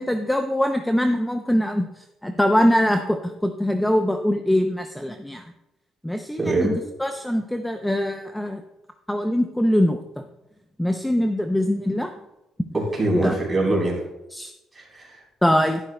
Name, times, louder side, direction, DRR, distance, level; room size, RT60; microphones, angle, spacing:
voice 1, 0.0-1.9 2.2-5.4 6.0-8.6 9.1-10.0 10.8-12.1 13.1-13.4 14.3-14.5 15.4-15.8, equal, 5° left, 6 dB, 0.5 m, -22 dB
voice 2, 6.4-6.8 12.7-14.0 14.7-15.2, right 2 dB, 20° right, -3 dB, 3.8 m, -23 dB
11.5 x 11.0 x 2.2 m, 0.92 s
cardioid pair, 105°, 0 cm